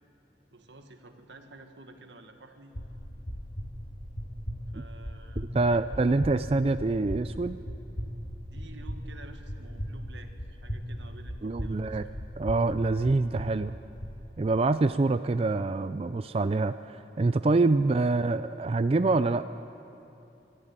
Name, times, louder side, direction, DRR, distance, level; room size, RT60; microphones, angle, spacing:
voice 1, 0.5-2.7 4.7-6.2 8.5-12.0, right 2 dB, 90° right, 5 dB, 1.7 m, -51 dB
sound 1, 2.7-14.2, equal, 45° left, 1.9 m, -38 dB
voice 2, 5.5-7.6 11.4-12.0 12.4-13.7 14.4-19.4, right 3 dB, 35° right, 11 dB, 0.4 m, -26 dB
24.5 x 13.5 x 8.9 m, 2.9 s
head